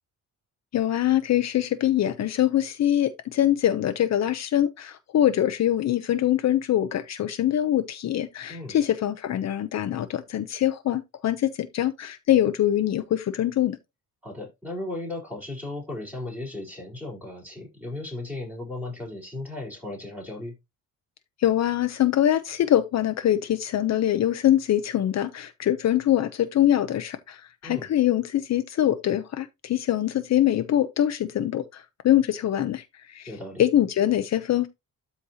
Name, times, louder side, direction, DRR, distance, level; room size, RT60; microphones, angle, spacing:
voice 1, 0.7-13.8 21.4-33.3 33.6-34.7, left 12 dB, 50° left, 0.8 m, -23 dB
voice 2, 14.2-20.5 27.6-27.9 33.3-33.6, left 2 dB, 5° right, 4.2 m, -36 dB
13.0 x 4.3 x 2.8 m
cardioid pair, 155°, 34 cm